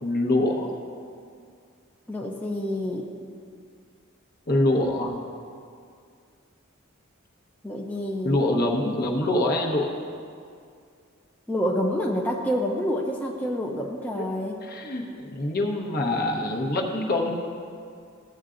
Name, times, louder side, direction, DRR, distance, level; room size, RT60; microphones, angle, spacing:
voice 1, 0.0-0.7 4.5-5.2 8.2-9.9 14.7-17.3, left 1 dB, 50° left, 1 dB, 1.0 m, -24 dB
voice 2, 2.1-3.1 7.6-8.4 11.5-14.6, equal, 10° left, -1 dB, 0.5 m, -28 dB
14.5 x 7.9 x 2.5 m, 2.3 s
head